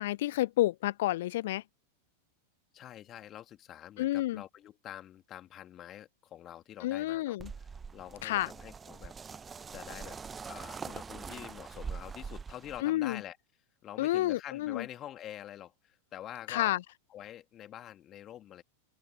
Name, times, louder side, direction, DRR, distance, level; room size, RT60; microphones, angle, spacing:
voice 1, 0.0-1.6 4.0-4.4 6.8-7.5 8.2-8.5 12.8-13.2 14.0-14.9 16.5-16.8, left 15 dB, 55° left, 0.3 m, -30 dB
voice 2, 2.7-7.7 7.9-9.1 9.7-10.2 10.5-13.4 13.8-16.8 17.1-18.6, left 12 dB, 30° left, 2.6 m, -46 dB
sound 1, 7.4-12.8, right 5 dB, 15° right, 1.1 m, -43 dB
open air
figure-of-eight pair, 90°, 0 cm